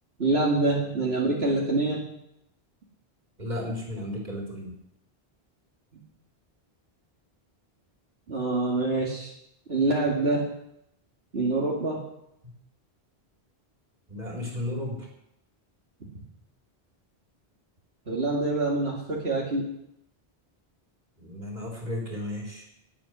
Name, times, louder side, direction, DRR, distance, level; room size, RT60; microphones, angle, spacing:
voice 1, 0.2-2.1 8.3-9.3 9.7-10.5 11.3-12.1 18.1-19.7, right 2 dB, 70° right, -4 dB, 2.6 m, -26 dB
voice 2, 3.4-4.7 14.1-15.0 21.2-22.6, left 1 dB, 45° right, -1 dB, 3.8 m, -34 dB
19.0 x 8.8 x 6.2 m, 0.79 s
omnidirectional pair, 1.1 m